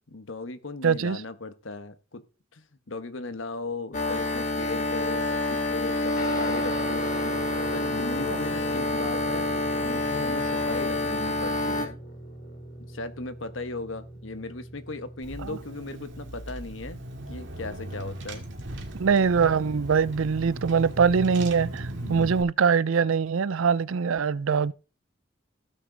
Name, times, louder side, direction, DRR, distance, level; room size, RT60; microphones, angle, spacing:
voice 1, 0.1-2.2 2.5-12.0 12.8-17.0 17.3-18.4 22.0-22.3, left 2 dB, 80° left, 1.2 m, -37 dB
voice 2, 0.8-1.2 8.3-8.4 15.4-15.6 19.0-24.7, right 6 dB, 85° right, 0.5 m, -23 dB
sound 1, 3.9-11.9, left 2 dB, 35° left, 1.7 m, -27 dB
Guitar, 6.2-15.9, right 1 dB, 55° left, 2.9 m, -40 dB
Car / Engine, 15.2-22.4, right 1 dB, 65° right, 2.1 m, -37 dB
16.0 x 6.1 x 3.9 m
head